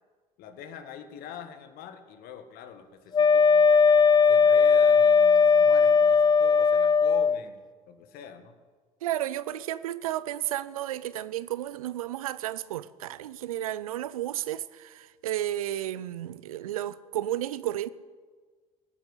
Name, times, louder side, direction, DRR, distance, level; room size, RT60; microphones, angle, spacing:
voice 1, 0.4-3.7 4.3-7.6 7.9-8.6, left 8 dB, 60° left, 1.8 m, -44 dB
Wind instrument woodwind instrument, 3.1-7.4, left 5 dB, 25° left, 0.5 m, -19 dB
voice 2, 9.0-17.9, right 13 dB, 80° right, 0.6 m, -32 dB
17.5 x 9.7 x 8.0 m
hypercardioid pair, 60°, 18 cm